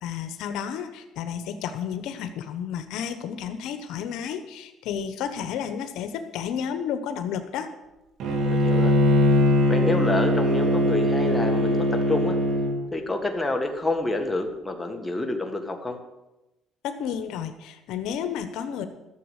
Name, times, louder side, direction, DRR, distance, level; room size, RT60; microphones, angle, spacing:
voice 1, 0.0-7.7 16.8-18.8, left 8 dB, 80° left, 8 dB, 1.1 m, -32 dB
Bowed string instrument, 8.2-12.7, left 1 dB, 65° right, 3.2 m, -21 dB
voice 2, 8.5-9.0 9.7-12.4 12.9-16.0, left 2 dB, 10° left, 3 dB, 1.8 m, -28 dB
13.0 x 7.2 x 8.2 m, 0.98 s
cardioid pair, 115°, 0 cm